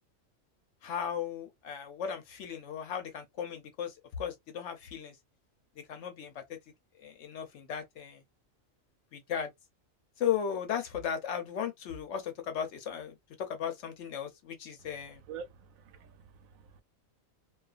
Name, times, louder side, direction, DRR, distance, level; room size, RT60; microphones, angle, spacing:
voice 1, 0.8-5.2 5.8-6.6 7.0-8.2 9.1-9.5 10.2-15.2, left 8 dB, 70° left, 0.9 m, -36 dB
voice 2, 15.3-16.8, right 6 dB, 90° right, 1.0 m, -47 dB
2.3 x 2.2 x 2.3 m
omnidirectional pair, 1.4 m